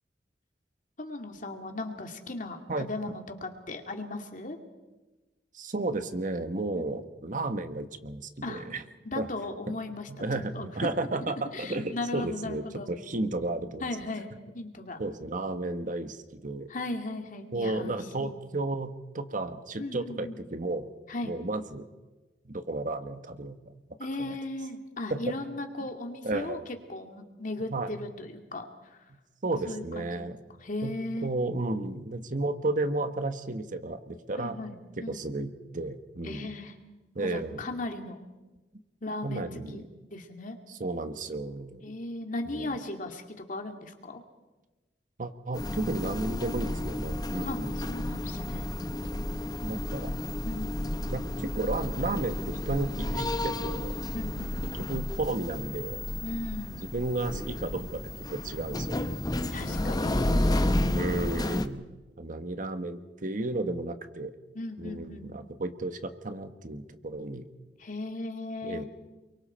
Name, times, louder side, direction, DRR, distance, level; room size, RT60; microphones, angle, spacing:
voice 1, 1.0-4.6 6.7-6.9 8.4-8.7 9.0-10.3 10.5-10.7 11.5-12.9 13.8-15.0 16.7-18.3 19.8-20.4 21.1-21.3 24.0-26.6 26.9-29.0 29.7-30.2 30.6-31.3 34.4-34.7 35.0-35.2 36.2-36.7 37.2-38.2 39.0-39.8 40.1-40.6 41.8-44.2 47.4-48.7 50.4-50.8 54.1-54.8 56.2-56.8 59.5-60.3 64.5-65.3 67.8-68.9, left 2 dB, 50° left, 4 dB, 2.4 m, -37 dB
voice 2, 5.5-8.8 9.2-9.3 10.1-13.9 15.0-16.7 17.5-20.9 21.2-21.8 22.4-23.6 24.2-24.4 25.1-25.3 26.2-26.6 27.7-27.9 29.4-30.4 30.8-30.9 31.2-34.6 35.1-36.5 37.1-37.6 39.2-39.9 40.7-41.8 42.5-42.7 45.2-47.7 49.6-50.1 51.1-53.9 54.8-56.0 56.8-58.0 58.3-59.2 59.6-60.0 60.9-61.8 62.2-64.3 64.8-67.4 68.6-68.8, right 2 dB, 50° right, 9 dB, 1.3 m, -33 dB
sound 1, 45.5-61.7, left 1 dB, 25° left, 0.9 m, -31 dB
29.0 x 23.5 x 4.4 m, 1.1 s
head